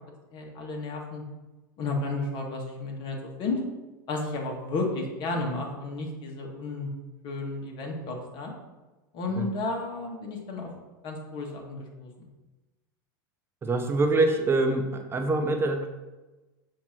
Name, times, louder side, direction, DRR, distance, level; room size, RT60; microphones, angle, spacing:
voice 1, 0.3-1.2 1.8-3.6 4.1-6.9 7.2-8.5 9.1-10.7 11.0-12.3, left 3 dB, 45° left, 0 dB, 1.8 m, -32 dB
voice 2, 13.6-15.9, right 2 dB, 20° right, 6 dB, 0.7 m, -25 dB
7.4 x 3.0 x 6.0 m, 1.1 s
hypercardioid pair, 110°, 11 cm